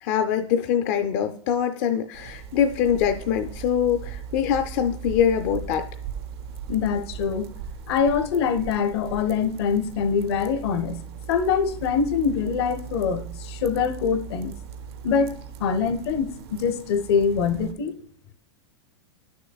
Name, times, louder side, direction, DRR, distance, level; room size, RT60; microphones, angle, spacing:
voice 1, 0.0-5.9, left 8 dB, 40° left, 0.4 m, -23 dB
sound 1, 2.1-17.7, right 7 dB, 60° right, 0.6 m, -39 dB
voice 2, 6.7-7.5 7.9-14.5 15.0-17.9, left 6 dB, 60° left, 0.7 m, -24 dB
11.0 x 6.5 x 2.3 m
supercardioid pair, 170°, 15 cm